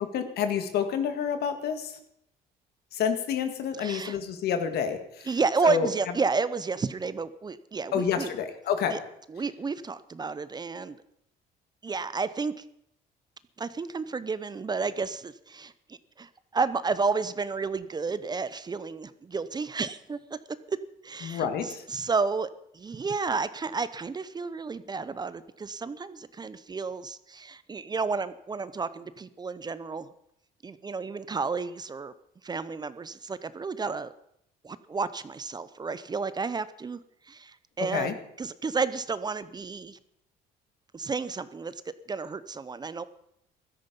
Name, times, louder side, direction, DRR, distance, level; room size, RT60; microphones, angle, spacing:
voice 1, 0.1-2.0 2.9-5.3 5.6-5.9 7.9-8.9 21.2-21.8 37.9-38.1, left 7 dB, 70° left, 8 dB, 2.0 m, -28 dB
voice 2, 3.8-4.2 5.3-8.3 8.9-9.0 9.3-11.0 11.8-12.6 13.6-20.2 20.7-20.8 21.0-30.1 30.6-32.1 32.4-34.1 34.6-37.0 37.3-40.0 40.9-43.0, right 4 dB, 25° right, 15 dB, 0.7 m, -31 dB
15.5 x 13.0 x 5.3 m, 0.75 s
cardioid pair, 110°, 17 cm